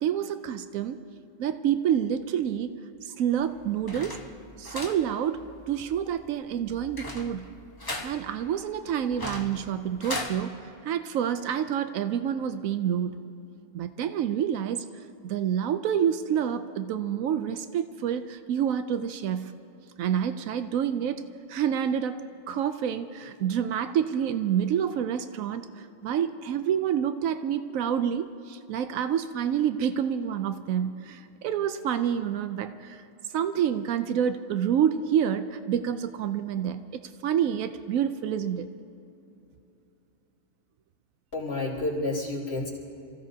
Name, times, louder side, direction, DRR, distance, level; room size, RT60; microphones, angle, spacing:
voice 1, 0.0-1.0 1.4-2.7 3.0-4.2 4.6-7.5 8.0-10.5 10.8-13.1 13.7-14.8 15.2-19.5 20.0-21.2 21.5-22.2 22.5-33.0 33.3-36.8 37.2-38.7, right 9 dB, 85° right, 10 dB, 1.0 m, -28 dB
sound 1, 3.3-10.4, left 2 dB, 20° left, 0.9 m, -39 dB
voice 2, 41.3-42.7, left 2 dB, 50° left, -6 dB, 3.9 m, -30 dB
27.5 x 16.0 x 2.8 m, 2.9 s
omnidirectional pair, 1.4 m